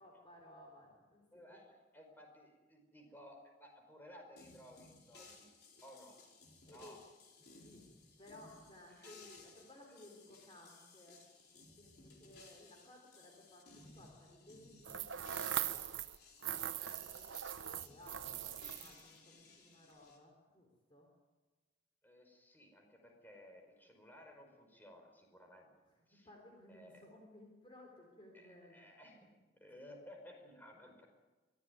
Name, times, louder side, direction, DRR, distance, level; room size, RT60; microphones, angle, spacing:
voice 1, 0.0-1.2 1.5-1.6 6.7-7.0 7.6-7.8 8.2-11.9 12.2-15.4 16.4-17.3 17.7-21.1 26.1-28.8, left 1 dB, 25° left, 1 dB, 3.8 m, -59 dB
voice 2, 1.3-5.5 5.8-6.1 6.7-7.0 8.9-9.1 9.4-9.5 16.8-17.0 22.0-25.7 26.1-26.3 26.7-27.1 28.3-31.1, left 1 dB, 10° left, 2 dB, 4.9 m, -57 dB
sound 1, 4.4-20.2, left 3 dB, 55° left, 4.7 m, -60 dB
sound 2, 14.8-16.2 16.4-19.0, right 10 dB, 90° right, 0.9 m, -41 dB
24.0 x 16.0 x 9.5 m, 1.2 s
head